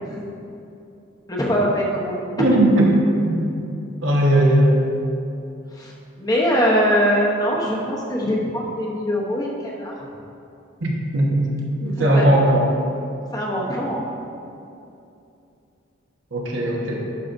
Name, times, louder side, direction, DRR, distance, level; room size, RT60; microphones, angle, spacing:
voice 1, 1.3-2.5 5.7-5.9 6.2-9.9 12.0-12.4 13.3-14.0, equal, 20° left, -3 dB, 0.9 m, -22 dB
voice 2, 2.4-2.9 3.2-3.6 4.0-4.8 10.8-11.5 11.8-12.7 16.3-17.0, right 1 dB, 70° right, -2 dB, 1.2 m, -18 dB
11.0 x 5.6 x 2.6 m, 2.7 s
head